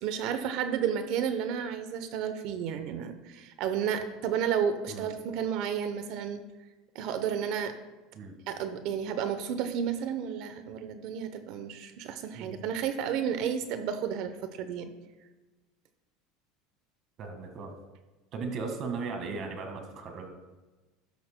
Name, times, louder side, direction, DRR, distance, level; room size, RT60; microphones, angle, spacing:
voice 1, 0.0-6.4 6.9-7.7 8.5-14.9, right 8 dB, 60° right, 9 dB, 0.8 m, -32 dB
voice 2, 12.3-12.6 17.2-17.7 18.3-20.3, right 4 dB, 45° right, 5 dB, 1.6 m, -37 dB
12.5 x 11.0 x 2.2 m, 1.2 s
supercardioid pair, 130°, 0 cm